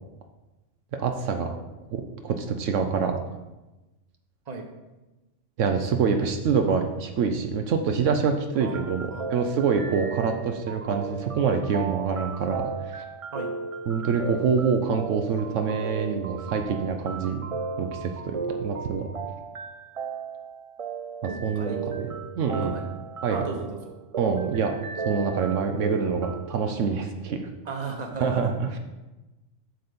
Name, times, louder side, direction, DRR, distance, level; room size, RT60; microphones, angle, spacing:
voice 1, 0.9-1.5 1.9-3.2 5.6-13.0 13.9-17.4 17.8-19.1 21.4-22.1 22.4-22.8 23.2-23.5 24.2-27.5 28.2-28.7, right 6 dB, 75° right, 5 dB, 1.0 m, -26 dB
voice 2, 8.6-9.3 13.3-13.5 21.3-22.1 22.6-22.8 23.3-23.8 27.6-28.5, right 3 dB, 35° right, 3 dB, 1.1 m, -36 dB
sound 1, 8.7-26.6, right 5 dB, 55° right, 0.3 m, -35 dB
7.8 x 4.1 x 6.7 m, 1.1 s
omnidirectional pair, 1.3 m